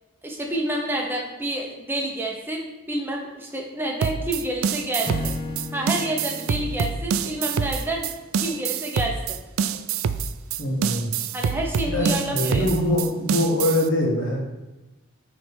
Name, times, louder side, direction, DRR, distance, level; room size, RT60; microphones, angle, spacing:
voice 1, 0.2-5.3 5.7-8.1 8.4-9.4 11.3-12.7, right 1 dB, 10° right, 0 dB, 0.7 m, -28 dB
sound 1, 4.0-13.9, right 7 dB, 80° right, 0.3 m, -26 dB
Acoustic guitar / Strum, 5.0-8.4, left 2 dB, 25° left, 0.4 m, -35 dB
voice 2, 10.6-11.1 11.8-14.4, left 1 dB, 65° left, -2 dB, 1.5 m, -23 dB
8.8 x 3.3 x 3.4 m, 1.1 s
head